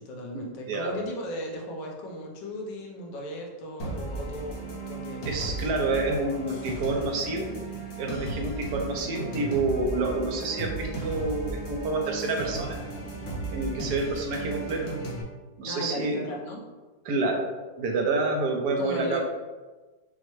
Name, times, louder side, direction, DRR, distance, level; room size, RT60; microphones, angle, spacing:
voice 1, 0.0-5.7 15.7-16.6 18.8-19.2, equal, 75° left, -1 dB, 1.4 m, -36 dB
sound 1, 3.8-15.2, right 2 dB, 55° left, 0.7 m, -35 dB
voice 2, 5.3-7.5 8.0-12.8 13.5-14.9 15.6-16.3 17.0-17.5 17.8-19.2, right 3 dB, 70° right, 1 dB, 1.2 m, -28 dB
5.6 x 2.1 x 3.0 m, 1.3 s
omnidirectional pair, 1.9 m